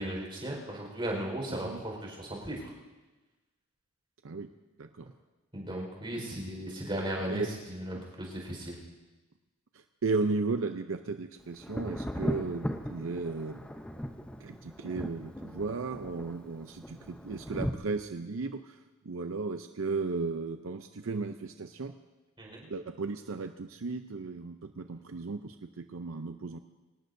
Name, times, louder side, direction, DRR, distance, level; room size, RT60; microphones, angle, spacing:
voice 1, 0.0-2.6 5.5-8.7 22.4-22.7, right 1 dB, 25° right, -1 dB, 4.7 m, -36 dB
voice 2, 10.0-13.6 14.4-18.8 19.0-21.9 22.6-26.6, right 3 dB, 75° right, 7 dB, 0.6 m, -35 dB
Thunder, 11.6-17.7, equal, 5° left, 0.7 m, -38 dB
25.0 x 18.5 x 2.7 m, 1.2 s
head